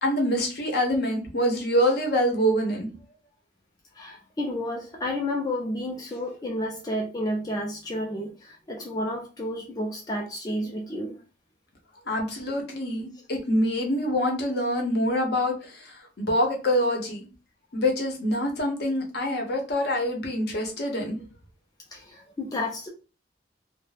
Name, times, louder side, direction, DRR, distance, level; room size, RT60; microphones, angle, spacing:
voice 1, 0.0-2.9 12.1-17.3 17.7-21.2, equal, 60° left, 0.7 m, -25 dB
voice 2, 3.9-11.2 21.9-22.9, left 1 dB, 20° left, 0.4 m, -31 dB
2.3 x 2.0 x 3.2 m
head